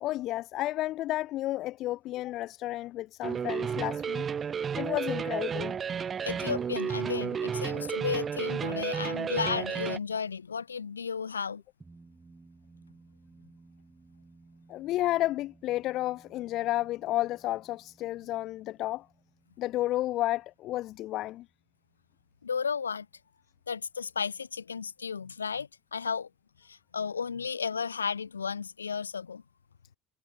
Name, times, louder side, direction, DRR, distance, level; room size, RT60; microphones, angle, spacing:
voice 1, 0.0-4.3 4.8-5.8 14.7-19.1 19.6-21.5, left 15 dB, 50° left, 0.7 m, -31 dB
sound 1, 3.2-10.0, right 7 dB, 35° right, 0.7 m, -32 dB
voice 2, 6.2-11.6 22.4-23.1 23.7-26.3 26.6-29.4, left 6 dB, 85° left, 0.3 m, -33 dB
sound 2, 11.8-22.5, right 3 dB, 15° right, 4.2 m, -59 dB
figure-of-eight pair, 65°, 0 cm